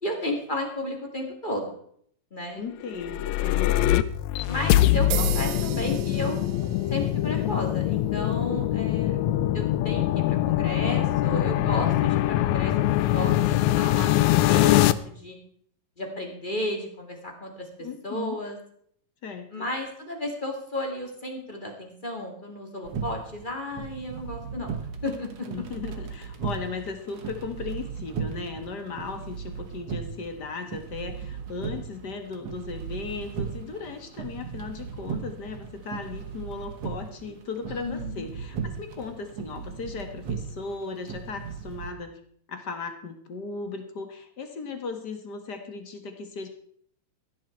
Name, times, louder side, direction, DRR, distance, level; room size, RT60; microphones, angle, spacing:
voice 1, 0.0-1.8 2.3-2.6 4.4-6.5 6.9-9.2 9.5-15.4 16.0-17.7 18.0-18.6 19.5-25.7 37.7-38.3, left 1 dB, 15° left, 2 dB, 1.9 m, -33 dB
voice 2, 2.6-3.8 17.8-18.4 19.2-19.7 25.5-42.2 42.5-46.5, left 4 dB, 45° left, 6 dB, 1.4 m, -37 dB
sound 1, 2.9-14.9, left 14 dB, 80° left, 1.6 m, -23 dB
sound 2, 5.1-13.2, right 13 dB, 85° right, 2.5 m, -40 dB
sound 3, 22.8-41.9, right 6 dB, 55° right, 2.4 m, -37 dB
15.5 x 10.5 x 4.6 m, 0.63 s
omnidirectional pair, 3.9 m